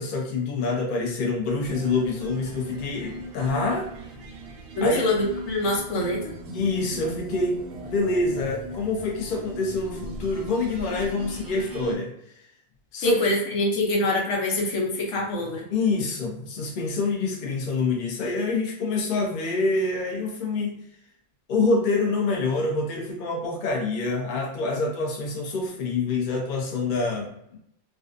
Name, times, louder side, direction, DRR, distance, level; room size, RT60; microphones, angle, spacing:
voice 1, 0.0-3.9 4.8-5.0 6.5-12.1 12.9-13.2 15.7-20.8 21.5-27.6, left 3 dB, 55° left, 0 dB, 0.6 m, -26 dB
sound 1, 1.5-11.9, right 1 dB, 60° right, 0.5 m, -37 dB
voice 2, 4.8-6.2 13.0-15.7, left 2 dB, 70° left, -1 dB, 1.0 m, -24 dB
2.5 x 2.3 x 2.4 m, 0.75 s
omnidirectional pair, 1.3 m